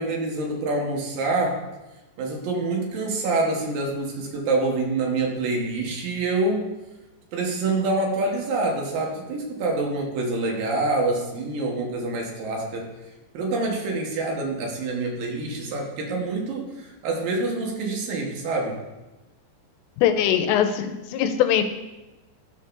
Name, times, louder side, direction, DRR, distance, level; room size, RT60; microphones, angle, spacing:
voice 1, 0.0-1.6 2.2-6.7 7.3-12.9 13.3-18.8, right 2 dB, 65° right, 0 dB, 2.4 m, -26 dB
voice 2, 20.0-21.6, left 9 dB, 85° left, 8 dB, 2.8 m, -21 dB
13.0 x 6.3 x 2.5 m, 1.1 s
omnidirectional pair, 5.1 m